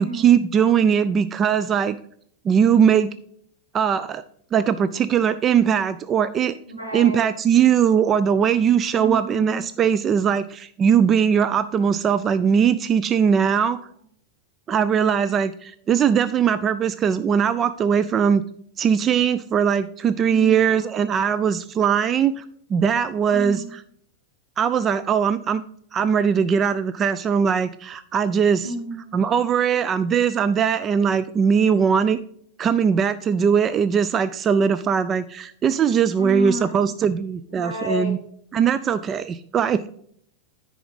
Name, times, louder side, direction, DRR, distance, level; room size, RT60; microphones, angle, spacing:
voice 1, 0.0-2.0 2.4-3.1 3.7-4.2 4.5-6.5 6.9-13.8 14.7-18.4 18.8-22.4 22.7-23.8 24.6-25.6 25.9-28.7 29.1-32.2 32.6-38.2 38.5-39.9, right 7 dB, 25° right, 14 dB, 0.3 m, -20 dB
voice 2, 6.8-7.3 9.0-9.6 20.3-20.7 23.3-23.7 28.6-29.2 36.2-36.9 37.5-38.1, right 2 dB, 85° right, -2 dB, 2.8 m, -31 dB
10.0 x 4.9 x 3.9 m, 0.64 s
figure-of-eight pair, 90°, 0 cm